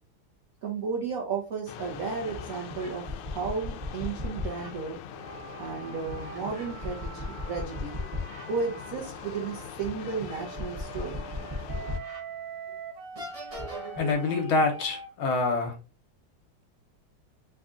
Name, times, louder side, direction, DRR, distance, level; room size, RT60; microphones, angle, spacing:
voice 1, 0.6-5.0 5.6-8.0 8.5-11.2, right 5 dB, 60° right, 0.9 m, -33 dB
sound 1, 1.7-12.0, left 8 dB, 90° left, 1.5 m, -43 dB
sound 2, 1.7-1.8 2.3-4.7 6.1-8.5 8.9-9.1 9.8-12.2 12.7-12.8 13.2-14.1, left 2 dB, 30° right, 0.6 m, -37 dB
sound 3, 5.1-9.7 10.4-15.1, right 5 dB, 90° right, 1.5 m, -44 dB
voice 2, 14.0-15.7, left 3 dB, 75° left, 1.7 m, -26 dB
4.1 x 2.4 x 3.6 m
omnidirectional pair, 2.3 m